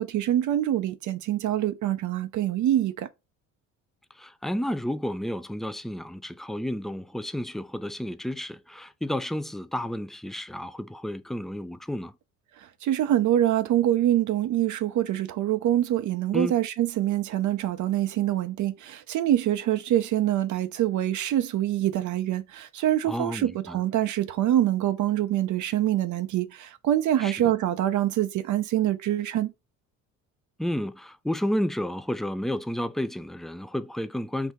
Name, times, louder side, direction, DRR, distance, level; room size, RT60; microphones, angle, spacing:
voice 1, 0.0-3.1 12.6-29.5, right 12 dB, 50° right, 0.6 m, -25 dB
voice 2, 4.1-12.2 16.3-16.6 23.0-23.8 27.2-27.5 30.6-34.5, equal, ahead, 0.4 m, -31 dB
4.6 x 2.6 x 3.7 m
hypercardioid pair, 65°, 38 cm